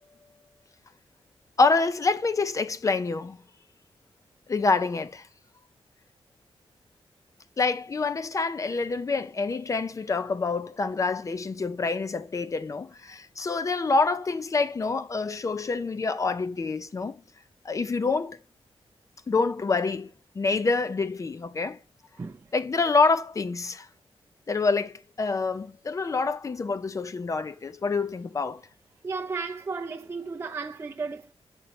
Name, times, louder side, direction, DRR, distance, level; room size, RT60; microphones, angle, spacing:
voice 1, 1.6-3.4 4.5-5.3 7.6-17.2 17.6-18.4 19.3-21.8 22.5-23.9 24.5-28.6, left 4 dB, 35° left, 0.5 m, -27 dB
voice 2, 22.2-22.5 29.0-31.3, right 4 dB, 25° right, 0.5 m, -34 dB
7.1 x 5.4 x 5.8 m
wide cardioid pair, 175°, 10 cm